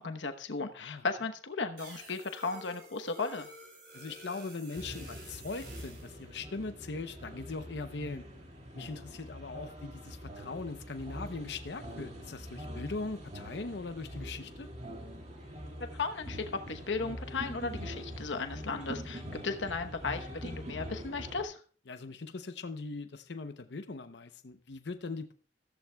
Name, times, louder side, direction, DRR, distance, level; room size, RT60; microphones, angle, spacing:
voice 1, 0.0-3.5 15.9-21.6, left 4 dB, 80° left, 1.0 m, -35 dB
sound 1, 1.8-6.1, right 1 dB, 60° right, 7.0 m, -51 dB
voice 2, 3.9-8.2 8.7-14.7 21.9-25.4, left 3 dB, 65° left, 0.7 m, -40 dB
sound 2, 4.8-21.4, equal, 40° right, 2.3 m, -44 dB
14.5 x 14.0 x 2.3 m
head